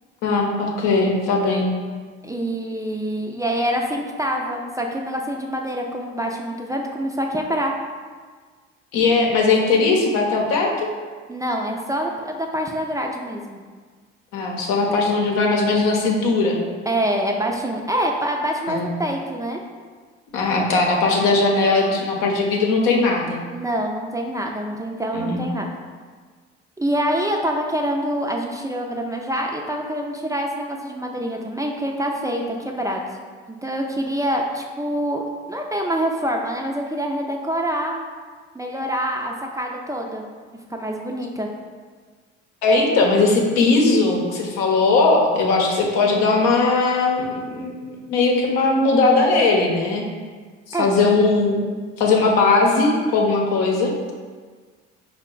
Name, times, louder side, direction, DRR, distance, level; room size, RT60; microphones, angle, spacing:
voice 1, 0.2-1.7 8.9-10.9 14.3-16.6 18.7-18.9 20.3-23.4 25.1-25.5 42.6-50.0 50.7-51.6 52.0-53.9, left 3 dB, 75° left, 0 dB, 0.8 m, -19 dB
voice 2, 2.2-7.7 11.3-13.6 16.9-19.6 23.5-25.7 26.8-33.0 33.6-38.1 38.5-40.2 40.7-41.5 50.7-50.9, equal, 10° right, 1 dB, 0.4 m, -25 dB
4.5 x 2.2 x 3.8 m, 1.5 s
hypercardioid pair, 65°, 32 cm